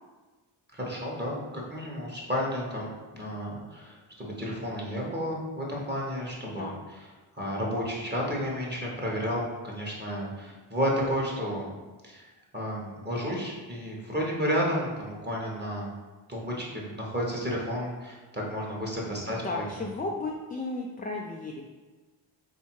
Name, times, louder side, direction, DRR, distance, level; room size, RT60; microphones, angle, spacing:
voice 1, 0.7-6.7 7.4-11.7 12.0-12.3 12.5-15.9 16.3-19.6, equal, 20° right, -3 dB, 1.2 m, -32 dB
voice 2, 6.5-6.8 19.3-21.6, left 3 dB, 20° left, -1 dB, 0.4 m, -34 dB
3.3 x 2.7 x 4.6 m, 1.3 s
cardioid pair, 55°, 49 cm